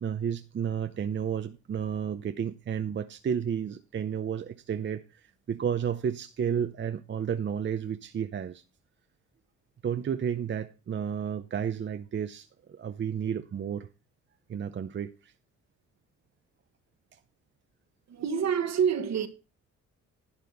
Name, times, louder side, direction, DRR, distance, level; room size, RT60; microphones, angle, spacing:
voice 1, 0.0-8.6 9.8-13.9 14.5-15.3 17.1-17.2, right 8 dB, 40° right, 0.7 m, -32 dB
voice 2, 18.1-19.3, right 7 dB, 60° right, 1.6 m, -27 dB
11.5 x 8.1 x 4.0 m
cardioid pair, 90°, 30 cm